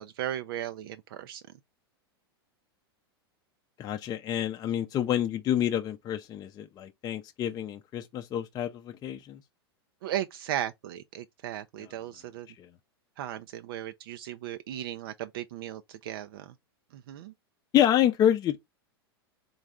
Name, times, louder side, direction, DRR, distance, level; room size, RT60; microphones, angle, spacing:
voice 1, 0.0-1.4 10.0-12.5 13.2-16.5 16.9-17.3, right 12 dB, 65° right, 0.4 m, -36 dB
voice 2, 3.8-9.4 12.6-12.7 17.7-18.6, left 11 dB, 30° left, 0.5 m, -27 dB
3.9 x 3.1 x 3.6 m
hypercardioid pair, 100°, 13 cm